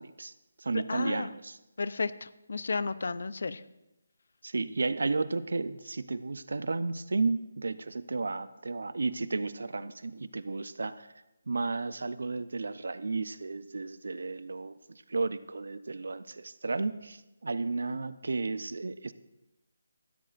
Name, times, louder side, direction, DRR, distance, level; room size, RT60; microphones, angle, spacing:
voice 1, 0.0-1.6 4.4-11.1 11.5-19.1, right 3 dB, 75° right, 14 dB, 0.7 m, -33 dB
voice 2, 0.9-1.3 1.8-3.6, left 4 dB, 65° left, 16 dB, 0.6 m, -33 dB
16.5 x 14.0 x 2.5 m, 0.98 s
figure-of-eight pair, 165°, 0 cm